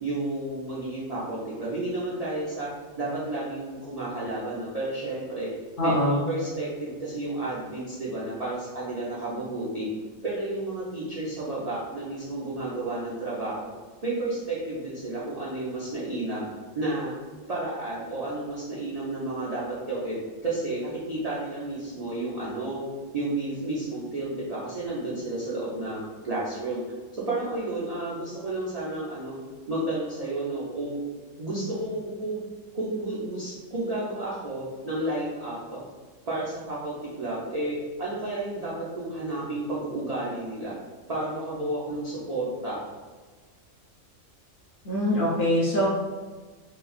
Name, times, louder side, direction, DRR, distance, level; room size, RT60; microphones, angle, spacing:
voice 1, 0.0-2.7 3.0-5.5 5.8-9.9 10.2-13.7 14.0-16.4 16.7-17.1 17.5-22.8 23.1-26.8 27.3-29.4 29.7-31.0 31.4-32.4 32.7-35.8 36.3-40.7 41.1-42.8, right 2 dB, 65° right, -7 dB, 0.3 m, -31 dB
voice 2, 5.8-6.3 44.8-45.9, equal, 60° left, -7 dB, 0.6 m, -23 dB
3.1 x 2.3 x 2.4 m, 1.4 s
omnidirectional pair, 1.4 m